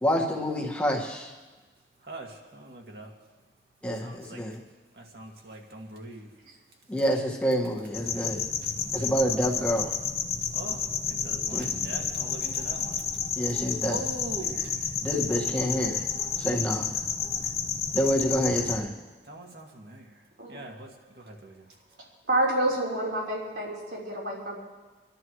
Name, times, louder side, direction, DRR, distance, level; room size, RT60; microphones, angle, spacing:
voice 1, 0.0-1.3 3.8-4.6 6.9-8.5 8.9-9.9 11.5-11.7 13.4-14.0 15.0-16.0 16.4-16.9 17.9-18.9, equal, 5° left, -1 dB, 1.7 m, -27 dB
voice 2, 2.0-3.1 3.9-4.4 4.9-6.3 8.6-9.1 10.5-13.2 13.5-17.3 19.2-21.7, right 2 dB, 65° right, 1 dB, 2.2 m, -43 dB
sound 1, 7.9-18.8, left 6 dB, 35° left, 0.9 m, -31 dB
voice 3, 22.3-24.5, right 1 dB, 85° right, -4 dB, 3.9 m, -28 dB
27.5 x 11.5 x 3.2 m, 1.3 s
head